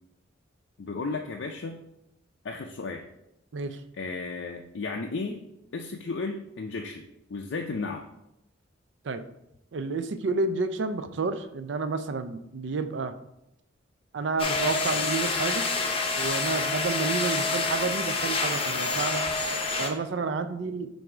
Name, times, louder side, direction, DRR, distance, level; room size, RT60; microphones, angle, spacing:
voice 1, 0.8-1.8 2.4-3.0 3.9-5.4 5.7-8.0, left 3 dB, 70° left, 2 dB, 0.4 m, -34 dB
voice 2, 9.7-13.1 14.1-15.6 16.2-19.2 19.8-20.9, right 4 dB, 65° right, 11 dB, 0.4 m, -30 dB
sound 1, 14.4-19.9, left 3 dB, 30° left, 0.7 m, -27 dB
7.6 x 2.6 x 4.8 m, 0.86 s
head